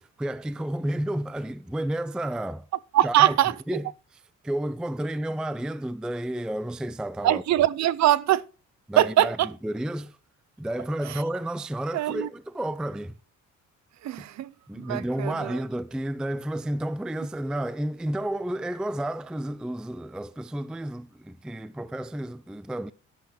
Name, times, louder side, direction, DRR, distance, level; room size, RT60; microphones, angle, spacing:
voice 1, 0.0-2.7 3.0-3.4 3.7-3.9 4.1-7.6 8.9-10.2 10.6-13.2 14.7-22.9, right 1 dB, 5° right, 0.4 m, -31 dB
voice 2, 2.9-3.5 7.2-8.4 9.0-9.5 11.9-12.3 14.0-15.6, right 13 dB, 65° right, 0.6 m, -22 dB
11.0 x 10.5 x 3.1 m
cardioid pair, 90°, 30 cm